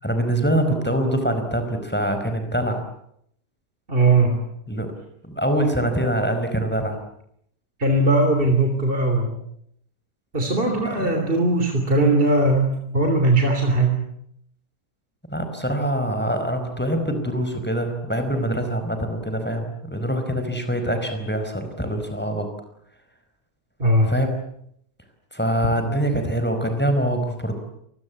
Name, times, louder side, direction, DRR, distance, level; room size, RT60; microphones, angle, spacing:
voice 1, 0.0-2.9 4.7-4.9 5.2-7.0 10.9-11.2 15.3-22.5 24.0-24.4 25.3-27.5, right 1 dB, 5° left, 6 dB, 4.8 m, -24 dB
voice 2, 3.9-4.4 7.8-9.3 10.3-14.0 23.8-24.1, right 2 dB, 35° right, 4 dB, 3.5 m, -19 dB
28.0 x 22.0 x 8.5 m, 0.72 s
omnidirectional pair, 1.7 m